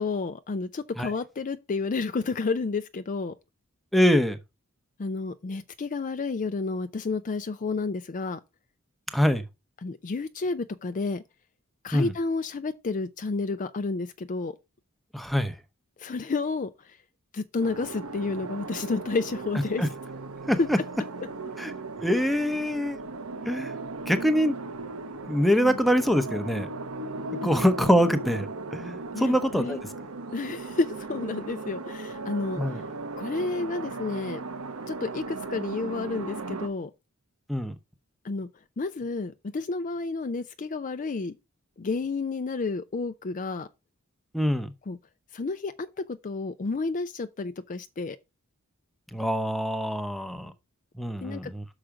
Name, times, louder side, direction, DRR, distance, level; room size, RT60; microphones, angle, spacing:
voice 1, 0.0-3.3 5.0-8.4 9.8-11.2 11.8-14.5 16.0-16.7 17.3-19.8 20.6-20.7 25.6-25.7 27.4-27.5 29.1-29.8 30.3-32.6 33.2-34.4 34.9-36.9 38.2-38.5 38.8-41.3 41.8-43.7 44.9-45.0 45.3-48.2 51.2-51.5, left 3 dB, 35° left, 0.4 m, -30 dB
voice 2, 3.9-4.4 9.1-9.5 11.9-12.1 15.1-15.6 19.8-19.9 20.5-20.8 21.6-21.7 22.0-23.0 23.4-23.7 24.0-24.6 25.3-26.7 27.4-29.9 32.6-32.8 37.5-37.7 44.3-44.7 49.1-50.5 50.9-51.6, equal, ahead, 0.8 m, -24 dB
sound 1, 17.6-36.7, right 3 dB, 75° right, 1.0 m, -37 dB
6.3 x 4.9 x 5.8 m
head